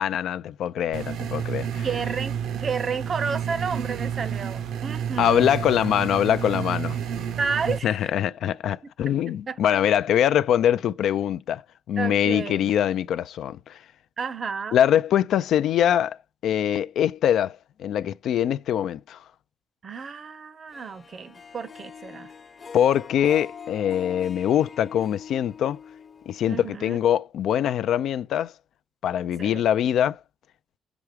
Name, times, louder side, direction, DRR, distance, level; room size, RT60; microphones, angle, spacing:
voice 1, 0.0-1.9 5.2-7.0 7.8-11.6 11.9-13.8 14.7-16.2 16.4-19.2 22.7-25.8 26.3-28.5 29.0-30.2, left 10 dB, 75° left, 0.3 m, -23 dB
sound 1, 0.9-7.8, right 8 dB, 80° right, 0.7 m, -30 dB
voice 2, 1.8-5.5 7.4-8.1 8.8-8.9 9.5-9.6 12.0-12.7 14.2-14.8 19.8-22.3 26.5-27.0 29.4-29.6, right 5 dB, 45° right, 0.6 m, -31 dB
Harp, 20.7-27.0, left 6 dB, 40° left, 0.9 m, -43 dB
6.0 x 4.7 x 4.9 m
cardioid pair, 90°, 0 cm